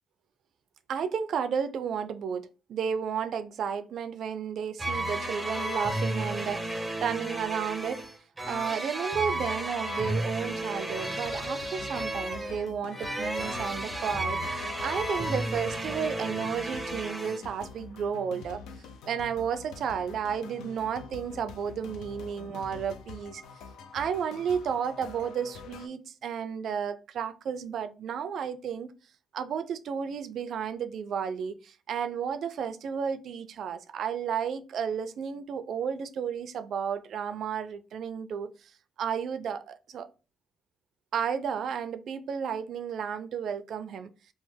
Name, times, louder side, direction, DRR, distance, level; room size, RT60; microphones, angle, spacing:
voice 1, 0.9-8.0 8.4-18.6 19.1-23.4 23.9-28.9 29.3-38.7 39.0-40.1 41.1-44.1, right 7 dB, 65° right, 0.3 m, -32 dB
sound 1, 4.8-17.4, right 1 dB, 10° right, 0.5 m, -33 dB
sound 2, 11.2-25.9, left 5 dB, 90° left, 0.4 m, -46 dB
3.0 x 2.0 x 3.2 m
cardioid pair, 90°, 0 cm